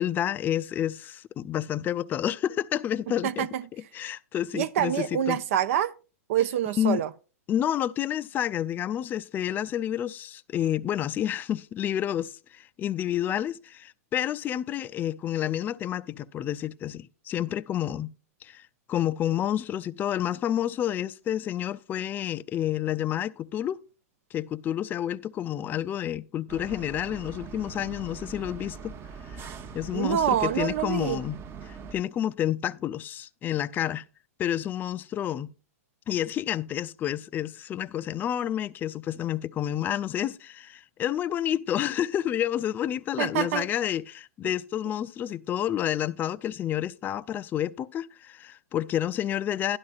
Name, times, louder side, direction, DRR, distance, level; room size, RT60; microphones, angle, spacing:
voice 1, 0.0-3.5 3.9-5.4 6.8-7.0 7.5-18.1 18.4-23.8 24.3-28.9 29.3-29.5 29.7-31.4 31.6-34.0 34.4-35.5 36.1-49.8, left 11 dB, 20° left, 0.4 m, -29 dB
voice 2, 3.2-3.6 4.5-5.9 6.3-7.1 29.9-31.2 43.2-43.7, right 10 dB, 60° right, 0.5 m, -26 dB
sound 1, 26.5-31.9, right 5 dB, 25° right, 0.9 m, -42 dB
12.0 x 11.5 x 2.4 m
hypercardioid pair, 115°, 8 cm